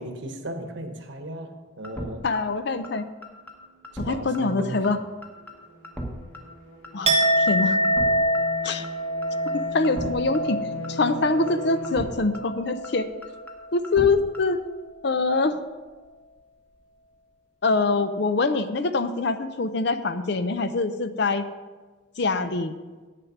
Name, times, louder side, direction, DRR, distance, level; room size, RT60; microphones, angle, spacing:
voice 1, 0.0-2.3 3.9-5.1, right 1 dB, 60° right, 6 dB, 1.1 m, -36 dB
sound 1, 1.8-2.1 2.3-2.4 2.8-2.9 3.2-3.5 3.8-4.1 4.3-4.4 4.8-4.9 5.2-5.5 5.8-6.1 6.3-6.4 6.8-6.9 7.2-7.5 7.8-8.1 8.3-8.4 8.8-8.9 9.2-9.5 9.8-10.1 10.3-10.4 10.8-10.9 11.2-11.5 11.8-12.1 12.3-12.4 12.8-12.9 13.2-13.5 13.8-14.1 14.3-14.4, equal, 10° left, 1.0 m, -35 dB
voice 2, 2.2-3.1 4.0-5.0 6.9-7.8 8.6-8.9 9.7-10.6 10.9-13.1 13.7-14.6 15.0-15.6 17.6-21.4 22.2-22.7, left 3 dB, 55° left, 11 dB, 0.6 m, -24 dB
sound 2, 3.2-12.0, equal, 75° left, 2.4 m, -41 dB
Chink clink, 7.1-13.0 13.3-13.7, equal, 30° right, 0.8 m, -26 dB
9.3 x 6.8 x 5.9 m, 1.3 s
head